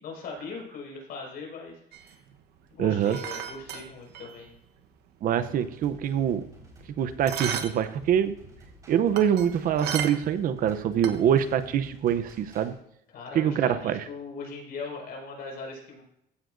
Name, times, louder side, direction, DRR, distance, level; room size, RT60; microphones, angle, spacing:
voice 1, 0.0-2.2 2.7-4.5 9.2-9.3 13.1-16.0, left 4 dB, 65° left, -1 dB, 5.2 m, -40 dB
sound 1, 1.9-4.6 4.8-4.9 5.3-6.8 7.2-7.9 8.2-10.5 10.8-11.5, right 8 dB, 75° right, 1.1 m, -35 dB
voice 2, 2.8-3.2 5.2-6.5 7.0-8.4 8.9-12.8 13.3-14.0, right 9 dB, 55° right, 12 dB, 0.7 m, -24 dB
sound 2, 5.4-12.8, right 1 dB, 20° right, 4.6 m, -52 dB
15.5 x 10.0 x 2.6 m, 0.77 s
cardioid pair, 140°, 17 cm